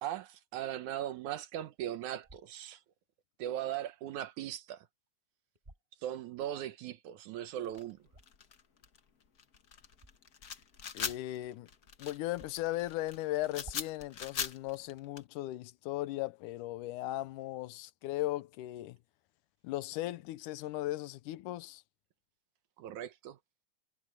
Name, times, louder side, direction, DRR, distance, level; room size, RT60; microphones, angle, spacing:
voice 1, 0.0-2.8 3.4-4.9 6.0-8.0 22.8-23.4, right 11 dB, 75° right, 2.3 m, -39 dB
sound 1, 2.2-2.5 5.5-5.9 8.0-8.5 9.9-10.1 11.0-11.4 11.7-11.8 12.3-12.8 13.5-14.0, right 1 dB, 15° right, 2.5 m, -54 dB
sound 2, 7.6-15.2, left 7 dB, 60° left, 0.9 m, -41 dB
voice 2, 10.9-11.7 12.0-19.0 19.6-21.8, left 16 dB, 85° left, 2.3 m, -37 dB
omnidirectional pair, 3.6 m